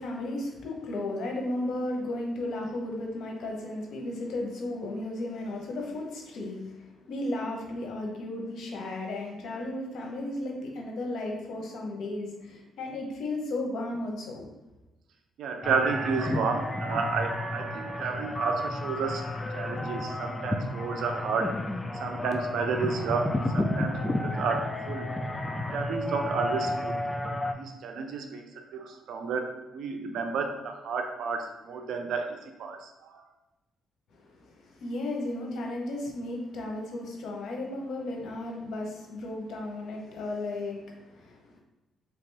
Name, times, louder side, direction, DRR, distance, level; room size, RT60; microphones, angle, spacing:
voice 1, 0.0-14.5 34.1-41.6, left 2 dB, 70° left, 0 dB, 0.9 m, -34 dB
voice 2, 15.4-19.2 19.5-21.5 22.0-23.3 23.5-25.2 25.7-27.0 27.2-33.2, right 5 dB, 75° right, 4 dB, 0.5 m, -31 dB
sound 1, 15.6-27.5, left 1 dB, 15° left, 0.3 m, -32 dB
3.5 x 2.9 x 3.3 m, 1.1 s
cardioid pair, 90°, 0 cm